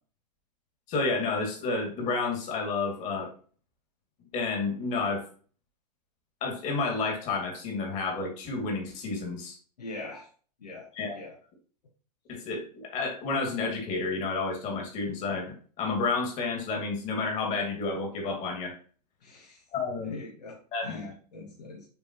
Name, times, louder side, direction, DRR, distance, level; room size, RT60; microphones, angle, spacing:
voice 1, 0.9-3.3 4.3-5.2 6.4-9.6 10.9-11.2 12.3-18.8 19.7-20.1 20.7-21.1, left 4 dB, 35° left, 2 dB, 2.5 m, -30 dB
voice 2, 9.8-10.3 10.6-11.4 19.2-19.6 20.0-21.9, left 2 dB, 75° left, -1 dB, 1.4 m, -42 dB
7.0 x 4.7 x 3.0 m, 0.42 s
hypercardioid pair, 110°, 21 cm